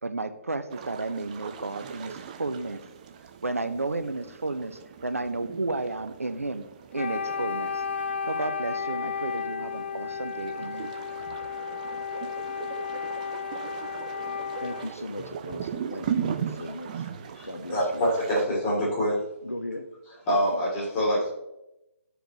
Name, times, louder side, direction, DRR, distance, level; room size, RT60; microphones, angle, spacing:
voice 1, 0.0-2.8 3.4-6.7 6.9-7.8 8.3-10.9, right 2 dB, 80° right, 9 dB, 0.8 m, -32 dB
sound 1, 0.7-18.5, right 8 dB, 30° right, 0.5 m, -38 dB
Wind instrument woodwind instrument, 6.9-15.0, left 6 dB, 50° left, 0.4 m, -33 dB
voice 2, 14.6-17.0 17.4-18.1 19.4-19.8, left 1 dB, 90° left, 5 dB, 1.1 m, -37 dB
voice 3, 17.3-19.2 20.3-21.3, equal, 20° left, -5 dB, 2.9 m, -25 dB
12.5 x 5.1 x 3.0 m, 0.90 s
figure-of-eight pair, 140°, 8 cm